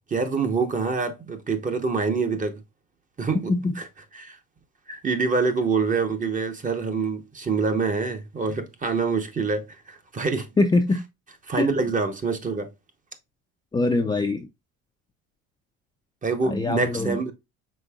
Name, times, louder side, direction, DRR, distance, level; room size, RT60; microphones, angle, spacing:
voice 1, 0.1-2.6 3.2-3.5 3.8-3.9 4.2-4.4 5.0-10.5 11.5-12.7 16.2-17.3, right 4 dB, 25° right, 0.9 m, -25 dB
voice 2, 10.6-11.0 11.6-11.7 13.7-14.5 16.4-17.2, left 2 dB, 15° left, 0.4 m, -23 dB
5.2 x 3.6 x 2.3 m
cardioid pair, 105°, 30 cm